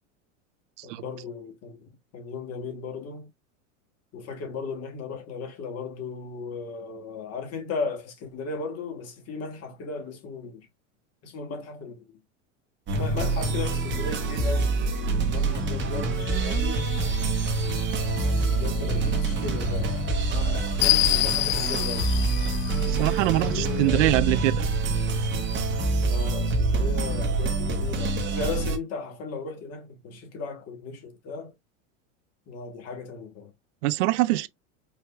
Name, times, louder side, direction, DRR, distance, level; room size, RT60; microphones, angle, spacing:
voice 1, 0.8-1.8 2.1-3.3 4.1-10.7 11.2-12.1 13.0-14.8 15.3-16.9 18.2-20.0 20.3-22.1 23.4-24.2 26.0-31.5 32.5-33.5, left 4 dB, 40° left, 1.7 m, -36 dB
sound 1, 12.9-28.8, right 3 dB, 30° right, 1.2 m, -26 dB
sound 2, 16.2-23.7, left 19 dB, 60° left, 0.5 m, -30 dB
voice 2, 22.9-24.6 33.8-34.5, right 17 dB, 75° right, 0.5 m, -23 dB
4.9 x 2.8 x 2.2 m
supercardioid pair, 115°, 37 cm